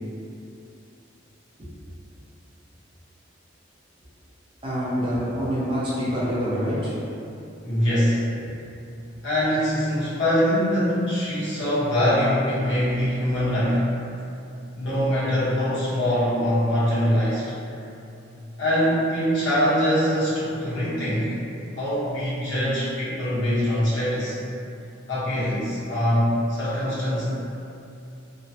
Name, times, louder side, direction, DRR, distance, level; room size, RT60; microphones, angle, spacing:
voice 1, 4.6-7.0, equal, 30° right, -8 dB, 0.6 m, -26 dB
voice 2, 7.6-8.3 9.2-13.9 14.7-17.6 18.6-21.3 21.8-24.4 25.1-27.3, equal, 70° left, -11 dB, 1.0 m, -23 dB
2.9 x 2.1 x 2.8 m, 2.7 s
head